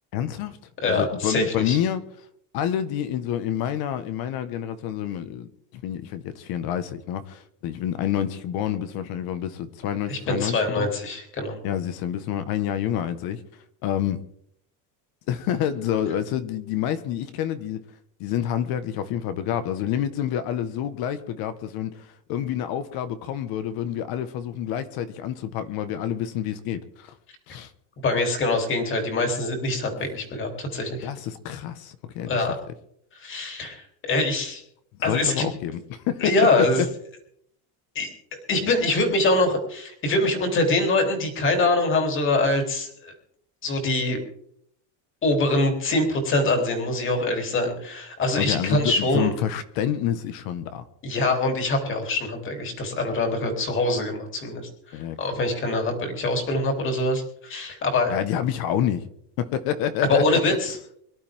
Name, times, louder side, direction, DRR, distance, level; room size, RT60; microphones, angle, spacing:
voice 1, 0.1-0.6 0.9-2.1 2.5-10.9 11.6-13.4 13.8-14.2 15.3-17.8 18.2-27.1 27.5-27.7 31.0-32.7 35.0-36.9 48.4-50.8 54.9-55.4 58.1-59.1 59.4-60.6, left 10 dB, 50° left, 1.6 m, -28 dB
voice 2, 0.8-1.8 10.1-11.6 28.0-31.1 32.3-32.5 33.2-34.6 35.0-35.4 36.2-36.8 38.0-38.1 38.5-43.1 43.6-44.2 45.2-49.3 51.0-58.1 60.1-60.8, left 2 dB, 25° left, 3.6 m, -24 dB
24.5 x 12.0 x 3.7 m
cardioid pair, 165°, 47 cm